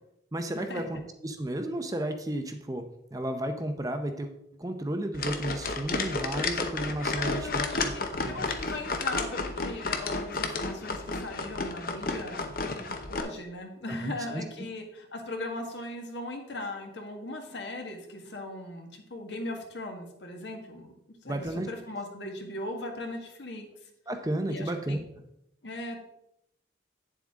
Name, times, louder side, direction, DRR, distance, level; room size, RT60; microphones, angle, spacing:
voice 1, 0.3-2.8 3.1-4.3 4.6-8.0 8.2-8.5 13.9-14.4 21.3-21.7 24.1-25.0, right 1 dB, 20° right, 6 dB, 0.6 m, -33 dB
sound 1, 5.1-13.2, left 3 dB, 50° left, 0.8 m, -32 dB
voice 2, 7.1-7.8 8.3-20.9 21.2-23.7 24.5-25.0 25.6-26.0, left 2 dB, 70° left, 3 dB, 1.7 m, -38 dB
9.2 x 7.3 x 3.6 m, 0.77 s
head